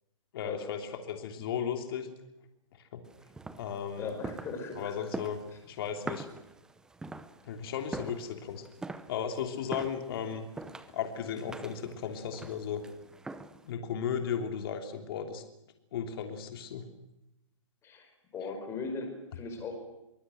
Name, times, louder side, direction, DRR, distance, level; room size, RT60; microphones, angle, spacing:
voice 1, 0.3-2.1 2.9-3.0 3.6-4.1 4.8-6.3 7.4-8.6 9.1-10.4 10.9-12.8 13.6-15.4 15.9-16.8, left 7 dB, 45° left, 5 dB, 3.1 m, -35 dB
sound 1, 3.1-13.7, right 3 dB, 5° right, 0.8 m, -44 dB
voice 2, 4.0-4.9 17.8-19.8, left 4 dB, 15° left, 5 dB, 4.9 m, -38 dB
24.5 x 20.0 x 7.9 m, 0.90 s
hypercardioid pair, 155°, 17 cm